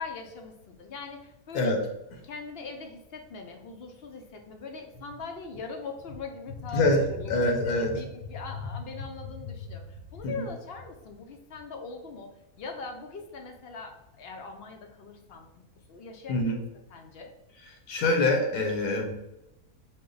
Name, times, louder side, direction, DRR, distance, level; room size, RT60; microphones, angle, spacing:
voice 1, 0.0-1.8 2.2-7.3 7.6-12.3 12.6-15.5 15.9-16.5 16.9-17.3, left 4 dB, 65° left, 3 dB, 0.6 m, -41 dB
voice 2, 7.3-8.0 10.4-10.5 16.3-16.6 17.9-19.1, left 2 dB, 90° left, 2 dB, 1.3 m, -24 dB
5.4 x 2.1 x 3.8 m, 0.90 s
omnidirectional pair, 1.5 m